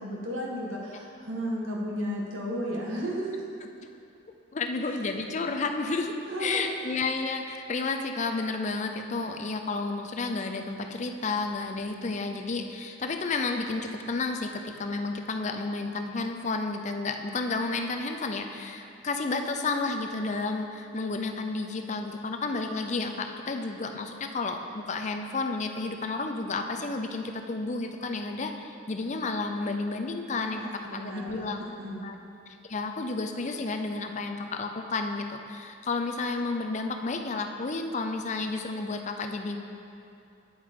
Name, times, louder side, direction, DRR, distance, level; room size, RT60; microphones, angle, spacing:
voice 1, 0.0-3.5 6.3-6.7 30.3-32.1, equal, 85° right, -3 dB, 1.6 m, -34 dB
voice 2, 4.5-31.6 32.0-32.1 32.6-39.6, left 3 dB, 35° left, 5 dB, 0.5 m, -31 dB
9.5 x 8.2 x 3.7 m, 2.7 s
head